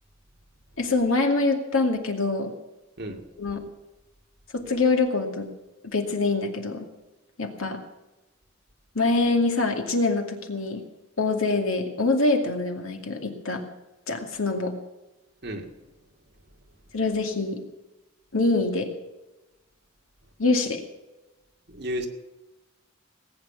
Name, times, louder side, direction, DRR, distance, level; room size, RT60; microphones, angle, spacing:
voice 1, 0.8-2.6 3.4-3.6 4.5-5.5 5.8-6.9 7.4-7.8 8.9-10.8 11.2-13.6 14.1-14.7 16.9-17.6 18.3-18.9 20.4-20.8, left 3 dB, 90° left, 4 dB, 2.4 m, -24 dB
voice 2, 21.7-22.1, equal, 50° right, 2 dB, 2.3 m, -32 dB
19.0 x 9.2 x 7.1 m, 1.0 s
head